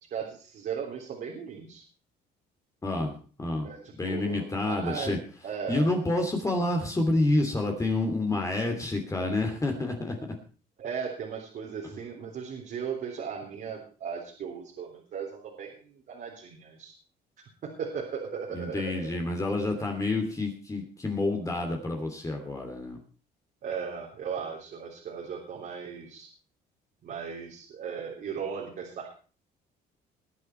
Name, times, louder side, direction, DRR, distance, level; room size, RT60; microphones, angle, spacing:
voice 1, 0.1-1.8 3.6-5.2 5.4-5.9 10.8-16.9 17.6-19.2 23.6-26.3 27.0-29.1, right 6 dB, 60° right, -2 dB, 3.7 m, -37 dB
voice 2, 2.8-3.1 3.4-3.7 4.0-5.2 5.7-10.4 18.5-23.0, left 2 dB, 20° left, 3 dB, 2.8 m, -28 dB
21.0 x 8.4 x 4.5 m, 0.39 s
cardioid pair, 110°, 17 cm